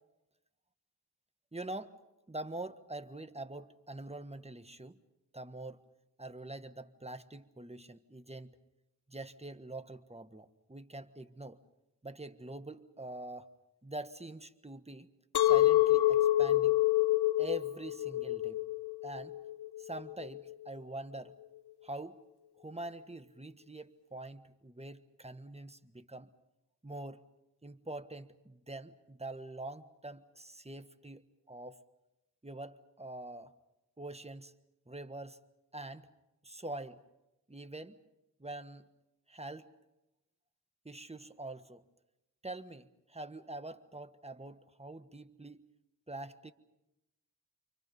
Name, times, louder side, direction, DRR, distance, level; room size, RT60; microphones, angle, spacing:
voice 1, 1.5-2.0 2.3-5.0 5.3-5.8 6.2-8.6 9.1-11.6 12.0-13.5 13.8-15.1 15.4-16.8 17.4-18.6 19.0-19.4 19.8-21.3 21.8-22.2 22.6-26.3 26.8-27.2 27.6-31.2 31.5-31.8 32.4-33.5 34.0-34.5 34.9-35.4 35.7-36.1 36.4-37.0 37.5-38.0 38.4-38.9 39.3-39.7 40.8-41.8 42.4-45.7 46.1-46.5, right 2 dB, 15° right, 10 dB, 1.5 m, -45 dB
Chink clink, 15.3-20.5, left 15 dB, 80° left, 0.7 m, -27 dB
29.5 x 24.5 x 5.5 m, 0.94 s
cardioid pair, 40°, 39 cm